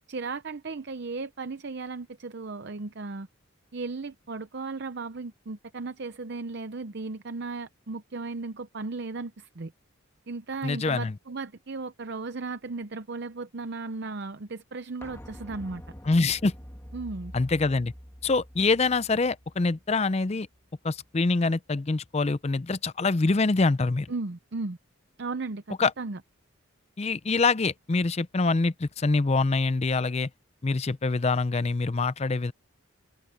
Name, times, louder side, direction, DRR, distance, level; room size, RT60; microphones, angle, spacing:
voice 1, 0.1-3.3 3.7-9.7 10.3-15.8 16.9-17.3 24.1-24.8 25.2-26.2, right 3 dB, 50° right, 0.7 m, -36 dB
voice 2, 10.6-11.1 16.1-16.5 17.3-17.9 18.2-20.5 20.8-24.1 25.8-25.9 27.0-30.3 30.6-32.5, left 3 dB, 30° left, 0.5 m, -25 dB
sound 1, 15.0-20.6 20.9-21.0, equal, 10° left, 1.9 m, -46 dB
head